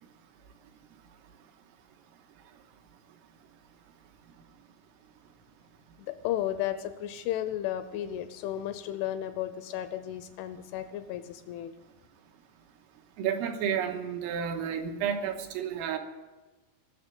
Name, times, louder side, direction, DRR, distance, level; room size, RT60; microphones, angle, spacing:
voice 1, 6.0-11.7, left 12 dB, 80° left, 11 dB, 2.8 m, -34 dB
voice 2, 13.2-16.0, right 8 dB, 85° right, 5 dB, 3.7 m, -31 dB
18.5 x 6.9 x 9.1 m, 1.2 s
omnidirectional pair, 5.8 m